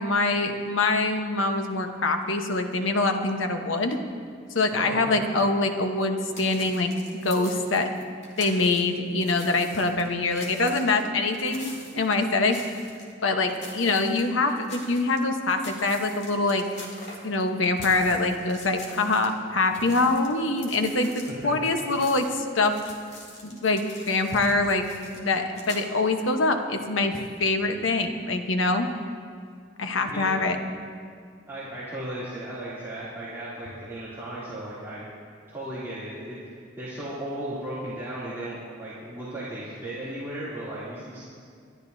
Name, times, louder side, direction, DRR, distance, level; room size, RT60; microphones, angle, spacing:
voice 1, 0.0-4.0 4.5-6.9 7.2-7.9 8.4-12.6 13.2-16.6 17.2-22.7 23.4-24.9 25.1-28.9 29.8-30.6, left 3 dB, 85° left, 5 dB, 1.1 m, -24 dB
voice 2, 4.7-5.3 30.1-30.3 31.5-35.0 35.5-36.4 36.8-41.3, right 1 dB, 15° right, -12 dB, 2.8 m, -35 dB
sound 1, 6.3-8.8 9.2-13.1 13.5-15.2 15.5-19.3 19.6-25.8, left 2 dB, 35° left, 2.2 m, -44 dB
28.5 x 12.0 x 2.7 m, 2.2 s
head